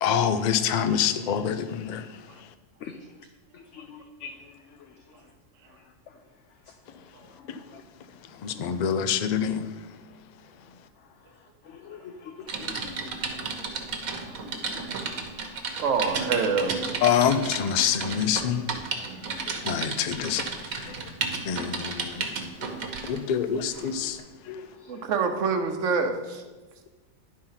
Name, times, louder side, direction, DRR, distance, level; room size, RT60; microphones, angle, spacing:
voice 1, 0.0-2.1 8.4-9.7 17.0-18.7 19.6-20.4 20.8-20.9 21.4-22.5 23.1-24.2, left 8 dB, 85° left, 0.3 m, -26 dB
voice 2, 3.5-4.3 7.5-7.8 11.8-12.9 14.4-14.8 15.1-15.2 19.3-19.6 20.9-21.0 22.6-22.8 24.0-24.1 24.5-24.6, left 6 dB, 65° left, 0.9 m, -43 dB
Typing, 12.5-23.2 23.7-23.9, right 4 dB, 85° right, 1.4 m, -33 dB
voice 3, 15.8-16.8 24.9-26.1, right 5 dB, 65° right, 1.2 m, -26 dB
10.5 x 4.3 x 5.6 m
omnidirectional pair, 1.4 m